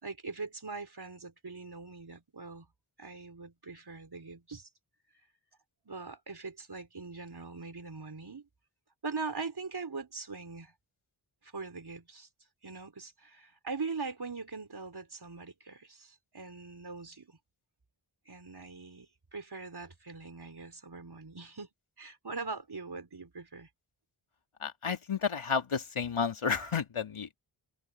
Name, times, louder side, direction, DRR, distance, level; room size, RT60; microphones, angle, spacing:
voice 1, 0.0-2.7 3.0-4.7 5.9-8.5 9.0-10.7 11.4-12.3 12.6-17.4 18.3-21.7 22.0-23.7, right 4 dB, 50° right, 4.3 m, -42 dB
voice 2, 24.6-27.3, left 6 dB, 85° left, 2.4 m, -31 dB
wide cardioid pair, 50°, 48 cm